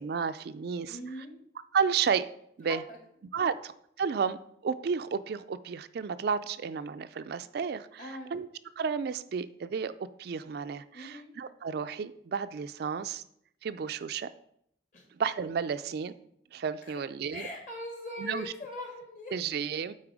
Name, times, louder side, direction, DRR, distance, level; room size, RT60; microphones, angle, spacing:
voice 1, 0.0-1.0 1.7-2.3 2.6-2.8 3.3-3.7 4.0-4.4 4.6-8.5 8.8-13.2 13.6-14.3 15.1-16.1 16.5-17.5 18.2-18.5 19.3-19.9, right 6 dB, 55° right, 12 dB, 0.3 m, -32 dB
voice 2, 0.9-1.4 2.9-3.0 3.4-3.5 8.0-8.3 10.9-11.3 14.9-15.1 16.8-16.9 17.3-19.3, left 1 dB, 45° left, 2 dB, 1.8 m, -41 dB
8.7 x 4.1 x 4.8 m, 0.71 s
head